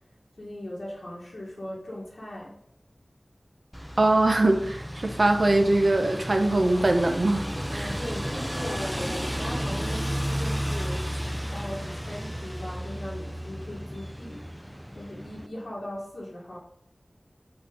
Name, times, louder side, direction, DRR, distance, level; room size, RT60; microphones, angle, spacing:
voice 1, 0.4-2.5 7.7-14.6 14.9-16.6, left 1 dB, 80° left, -6 dB, 1.6 m, -38 dB
sound 1, 3.7-15.5, equal, ahead, 0.6 m, -33 dB
voice 2, 4.0-8.0, right 2 dB, 65° right, 4 dB, 0.8 m, -22 dB
8.7 x 4.1 x 4.8 m, 0.73 s
wide cardioid pair, 50°, 0 cm